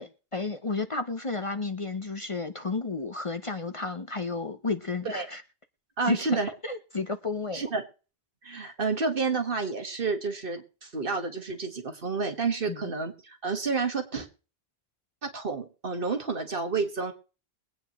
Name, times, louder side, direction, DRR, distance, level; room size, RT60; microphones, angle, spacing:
voice 1, 0.0-5.4 6.1-7.6 12.7-12.8, left 3 dB, 35° left, 9 dB, 0.8 m, -32 dB
voice 2, 6.0-6.5 7.5-7.8 8.4-14.3 15.2-17.1, right 4 dB, 60° right, 6 dB, 1.8 m, -30 dB
22.5 x 9.1 x 3.1 m, 0.35 s
omnidirectional pair, 1.1 m